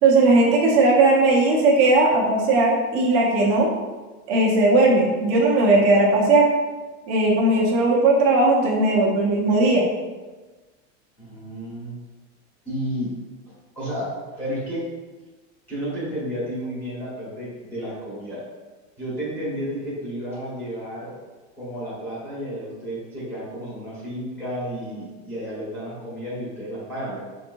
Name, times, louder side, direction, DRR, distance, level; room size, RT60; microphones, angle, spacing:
voice 1, 0.0-3.7 4.3-6.5 7.1-9.8, right 2 dB, 40° right, -3 dB, 0.9 m, -18 dB
voice 2, 11.2-11.9 12.6-13.1 13.7-14.9 15.7-18.5 19.0-21.2 21.5-27.2, equal, 5° left, -11 dB, 1.4 m, -32 dB
5.5 x 3.0 x 2.7 m, 1.3 s
supercardioid pair, 165°, 34 cm